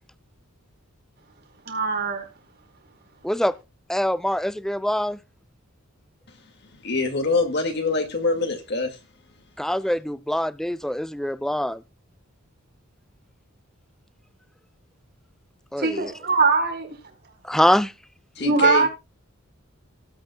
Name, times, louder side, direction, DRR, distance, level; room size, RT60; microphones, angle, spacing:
voice 1, 1.7-2.2 15.8-16.9 18.4-18.9, right 4 dB, 50° right, 4.5 m, -21 dB
voice 2, 3.2-3.6 3.9-5.2 9.6-11.8 15.7-16.1 17.4-17.9, equal, ahead, 0.4 m, -24 dB
voice 3, 6.7-9.0 18.4-18.9, left 3 dB, 55° left, 2.1 m, -24 dB
18.5 x 9.0 x 2.3 m
head